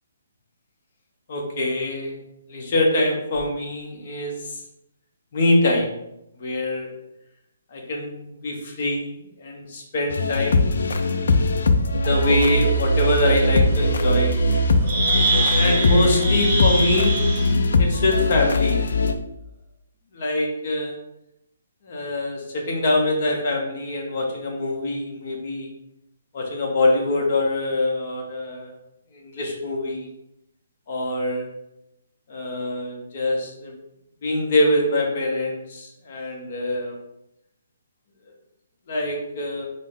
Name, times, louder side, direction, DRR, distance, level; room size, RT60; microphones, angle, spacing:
voice 1, 1.3-2.2 2.5-4.6 5.3-5.9 6.4-6.9 7.7-10.8 11.9-14.4 14.8-15.2 15.5-17.1 17.8-18.8 20.1-20.9 21.9-25.7 26.3-28.7 29.1-30.1 30.9-31.5 32.3-33.8 34.2-36.9 38.9-39.7, left 1 dB, 35° left, 0 dB, 0.7 m, -24 dB
sound 1, 10.1-19.1, left 2 dB, 65° left, 0.3 m, -20 dB
sound 2, 12.3-12.4 12.9-13.1 14.5-14.6 14.9-17.5, right 2 dB, 30° right, 0.5 m, -24 dB
4.0 x 2.0 x 3.4 m, 0.85 s
hypercardioid pair, 175°, 0 cm